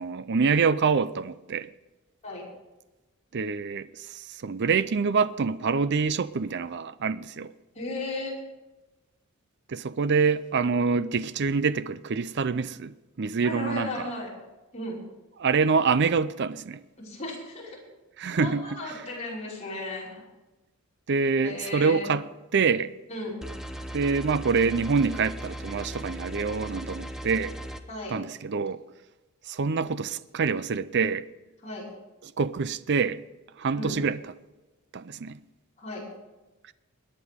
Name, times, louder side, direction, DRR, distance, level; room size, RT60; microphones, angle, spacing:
voice 1, 0.0-1.7 3.3-7.5 9.7-14.1 15.4-16.8 18.2-18.8 21.1-22.3 22.5-22.9 23.9-27.5 28.1-28.8 29.5-31.2 32.2-33.2 33.6-34.2 34.9-35.4, right 5 dB, 50° right, 0.5 m, -26 dB
voice 2, 7.7-8.4 13.4-14.3 14.7-15.0 17.0-17.8 18.4-20.2 21.4-22.1 23.1-23.4 27.9-28.1 31.6-31.8 33.7-34.0 35.8-36.0, left 2 dB, 30° left, 5.6 m, -35 dB
sound 1, 23.4-27.8, right 1 dB, ahead, 0.8 m, -37 dB
22.0 x 9.8 x 3.6 m
head